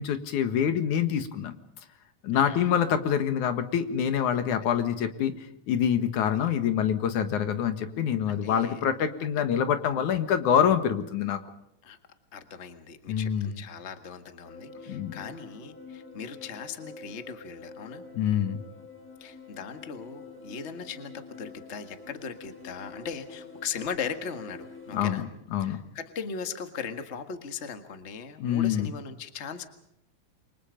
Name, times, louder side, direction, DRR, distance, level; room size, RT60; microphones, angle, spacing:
voice 1, 0.0-1.6 2.2-5.3 5.7-11.4 13.1-13.6 14.9-15.1 18.1-18.6 24.9-25.8 28.4-28.9, left 8 dB, 80° left, 9 dB, 3.1 m, -26 dB
voice 2, 2.3-2.8 6.2-6.5 8.3-8.8 11.8-12.0 12.3-18.0 19.2-25.3 25.6-29.7, left 6 dB, 30° left, 8 dB, 1.6 m, -39 dB
sound 1, 14.4-25.2, left 3 dB, 5° left, 3.4 m, -47 dB
29.0 x 24.0 x 5.2 m, 0.76 s
omnidirectional pair, 3.4 m